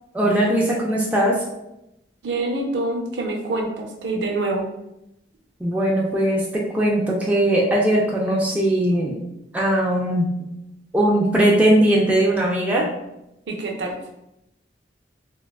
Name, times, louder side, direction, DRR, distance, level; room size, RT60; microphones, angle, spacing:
voice 1, 0.1-1.4 5.6-6.4 6.7-9.2 9.5-10.3 10.9-12.9, right 1 dB, 10° right, -4 dB, 0.3 m, -19 dB
voice 2, 2.2-4.7 13.5-13.9, right 2 dB, 75° right, 1 dB, 0.6 m, -26 dB
3.4 x 2.2 x 2.3 m, 0.87 s
head